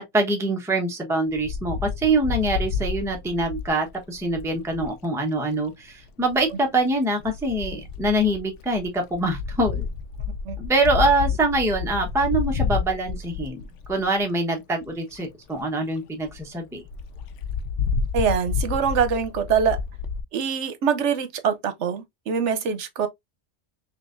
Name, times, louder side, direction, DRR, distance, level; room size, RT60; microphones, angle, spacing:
voice 1, 0.1-9.9 10.6-13.6 13.9-16.8, right 2 dB, 5° right, 0.9 m, -24 dB
Wind, 1.3-5.0 6.1-6.5 7.2-14.2 14.8-14.9 15.1-15.2 15.6-15.7 16.0-16.1 16.3-16.4 16.9-20.2, left 6 dB, 85° left, 0.9 m, -30 dB
voice 2, 18.1-19.8 20.3-23.1, right 7 dB, 75° right, 1.1 m, -24 dB
5.7 x 2.7 x 2.5 m
omnidirectional pair, 1.2 m